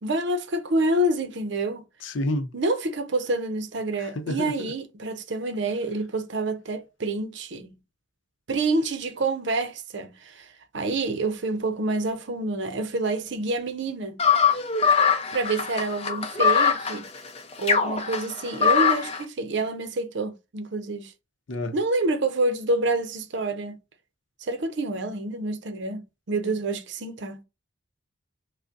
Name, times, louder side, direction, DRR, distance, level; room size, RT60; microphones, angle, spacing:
voice 1, 0.0-1.8 2.5-7.7 8.5-14.2 15.3-17.1 17.6-21.1 21.7-23.8 24.4-27.4, right 2 dB, 60° right, 0.6 m, -27 dB
voice 2, 2.0-2.5 4.0-4.7 21.5-21.8, left 1 dB, 70° left, 0.6 m, -29 dB
sound 1, 14.2-19.2, left 6 dB, 30° left, 0.6 m, -22 dB
5.0 x 2.1 x 2.5 m
head